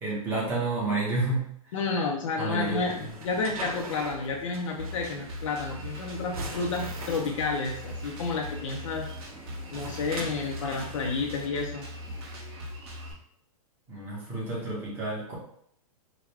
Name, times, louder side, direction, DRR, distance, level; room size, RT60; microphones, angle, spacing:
voice 1, 0.0-1.4 2.4-2.8 13.9-15.3, right 2 dB, 10° right, -6 dB, 0.9 m, -29 dB
voice 2, 1.7-9.1 9.7-11.9, left 4 dB, 55° left, 0 dB, 0.5 m, -30 dB
sound 1, 2.6-11.5, right 2 dB, 70° right, 1.0 m, -42 dB
Drum kit, 4.8-13.1, left 1 dB, 45° right, 1.0 m, -40 dB
4.8 x 2.2 x 3.3 m, 0.69 s
hypercardioid pair, 170°, 19 cm